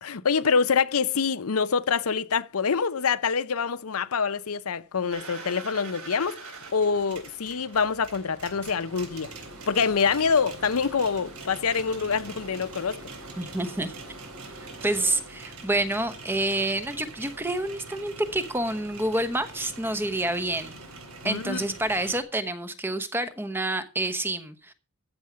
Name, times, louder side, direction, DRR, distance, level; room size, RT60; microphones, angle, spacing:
voice 1, 0.0-6.4 6.7-9.3 9.7-13.0 21.2-21.6, left 5 dB, 90° left, 0.7 m, -25 dB
sound 1, 5.1-22.2, right 3 dB, 90° right, 3.7 m, -43 dB
voice 2, 13.4-13.9 14.8-20.7 21.2-24.7, right 1 dB, 10° right, 1.0 m, -28 dB
14.5 x 7.2 x 5.0 m
head